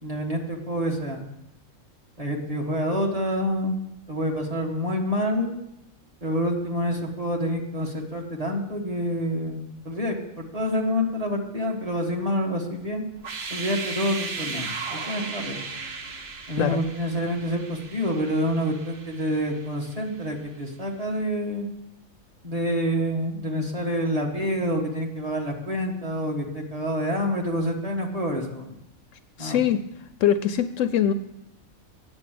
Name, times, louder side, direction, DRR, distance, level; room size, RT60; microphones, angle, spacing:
voice 1, 0.0-1.2 2.2-3.8 4.1-5.5 6.2-13.0 13.5-15.6 16.5-21.7 22.4-28.8 29.4-29.6, equal, 25° right, 0 dB, 1.5 m, -27 dB
sound 1, 13.2-20.0, right 4 dB, 50° right, 1.1 m, -36 dB
voice 2, 29.4-29.8 30.2-31.1, left 9 dB, 70° left, 11 dB, 0.9 m, -22 dB
8.9 x 6.9 x 7.6 m, 0.83 s
omnidirectional pair, 1.4 m